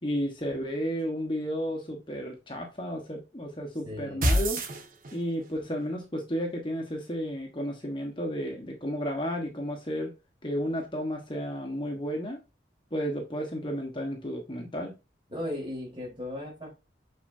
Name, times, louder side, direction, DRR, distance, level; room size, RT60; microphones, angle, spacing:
voice 1, 0.0-4.6 5.1-10.1 10.4-12.4 12.9-14.9, equal, 25° left, 1.2 m, -32 dB
voice 2, 3.8-4.3 15.3-16.7, left 1 dB, 25° right, 3.9 m, -36 dB
sound 1, 4.2-5.5, equal, 50° right, 1.5 m, -26 dB
8.2 x 6.5 x 2.7 m
head